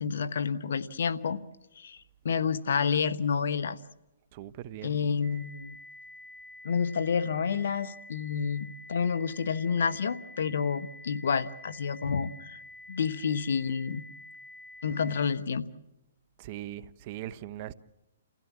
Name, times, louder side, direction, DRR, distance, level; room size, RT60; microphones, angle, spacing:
voice 1, 0.0-1.4 1.8-3.8 4.8-5.8 6.6-12.6 12.9-14.0 14.8-15.6, left 6 dB, 70° left, 1.1 m, -29 dB
voice 2, 4.3-5.0 16.4-17.7, right 13 dB, 40° right, 0.9 m, -40 dB
sound 1, 5.2-15.2, left 2 dB, 5° left, 6.5 m, -49 dB
29.0 x 16.0 x 7.4 m
hypercardioid pair, 135°, 0 cm